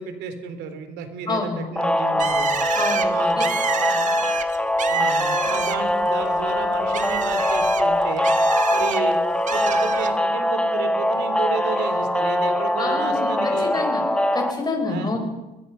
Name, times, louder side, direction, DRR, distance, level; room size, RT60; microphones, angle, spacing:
voice 1, 0.0-2.5 3.1-4.2 4.9-8.3 8.7-9.2 9.5-13.8 14.9-15.2, right 7 dB, 90° right, 9 dB, 3.3 m, -33 dB
voice 2, 1.3-1.7 2.1-2.2 2.7-3.4 12.8-14.0 14.3-15.2, left 3 dB, 25° left, 3 dB, 5.9 m, -28 dB
sound 1, 1.8-14.5, left 1 dB, 5° left, 1.4 m, -22 dB
Bird, 2.2-6.0 6.4-9.0 9.5-10.1, right 8 dB, 45° right, 1.6 m, -28 dB
23.0 x 21.5 x 5.7 m, 1.1 s
cardioid pair, 110°, 17 cm